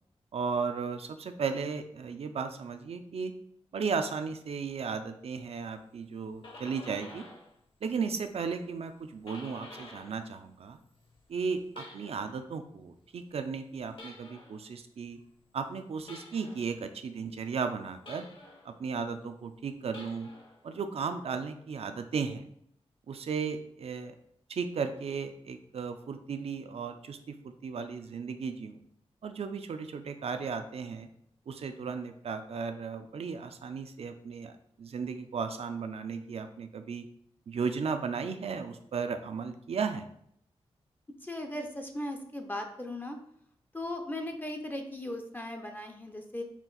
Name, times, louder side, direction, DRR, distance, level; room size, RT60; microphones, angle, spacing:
voice 1, 0.3-3.3 3.7-7.2 7.8-10.8 11.3-15.2 15.5-18.3 18.6-20.3 20.6-22.5 23.1-24.1 24.5-28.8 29.2-31.1 31.5-34.5 34.8-37.1 37.5-40.1, right 5 dB, 65° right, 8 dB, 0.4 m, -35 dB
sound 1, 6.1-7.5 7.9-10.3 10.6-12.4 13.9-14.6 16.1-16.7 18.1-18.7 19.8-20.6, left 2 dB, 50° left, 1.0 m, -50 dB
voice 2, 41.2-43.2 43.7-46.4, left 1 dB, 15° left, 4 dB, 0.5 m, -37 dB
4.3 x 2.5 x 3.8 m, 0.69 s
wide cardioid pair, 85°, 11 cm